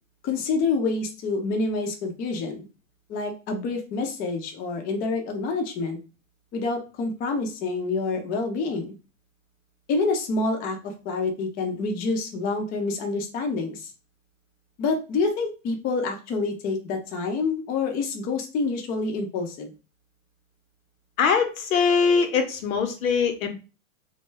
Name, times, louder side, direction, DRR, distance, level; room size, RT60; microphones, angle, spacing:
voice 1, 0.2-2.7 3.1-6.0 6.5-9.0 9.9-13.9 14.8-19.7, left 3 dB, 25° left, 3 dB, 0.4 m, -27 dB
voice 2, 21.2-23.5, left 5 dB, 85° left, 6 dB, 0.8 m, -22 dB
2.2 x 2.0 x 3.2 m, 0.32 s
hypercardioid pair, 125°, 40 cm